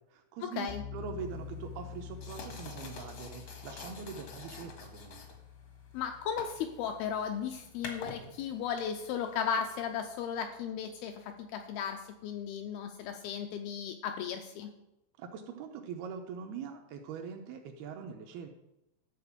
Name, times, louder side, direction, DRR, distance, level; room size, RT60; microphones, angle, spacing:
voice 1, 0.0-5.2 15.2-18.5, right 6 dB, 75° right, 4 dB, 2.5 m, -43 dB
sound 1, 0.7-9.5, left 7 dB, 25° right, 0.6 m, -48 dB
sound 2, 1.2-10.4, left 4 dB, 65° left, 1.5 m, -49 dB
voice 2, 5.9-14.7, left 7 dB, 80° left, 5 dB, 2.3 m, -35 dB
11.5 x 4.3 x 7.1 m, 0.88 s
omnidirectional pair, 4.9 m